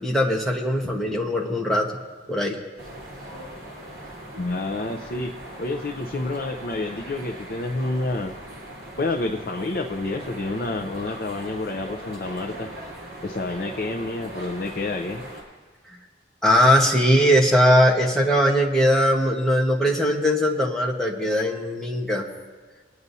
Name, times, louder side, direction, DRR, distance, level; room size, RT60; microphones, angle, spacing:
voice 1, 0.0-1.9 2.3-2.6 16.4-22.2, equal, 5° left, -2 dB, 1.2 m, -20 dB
sound 1, 2.8-15.4, right 1 dB, 60° right, 3.8 m, -39 dB
voice 2, 4.4-5.3 5.6-8.4 9.0-12.7 13.2-15.2, left 2 dB, 50° left, 3 dB, 0.6 m, -29 dB
22.0 x 9.5 x 2.7 m, 1.5 s
head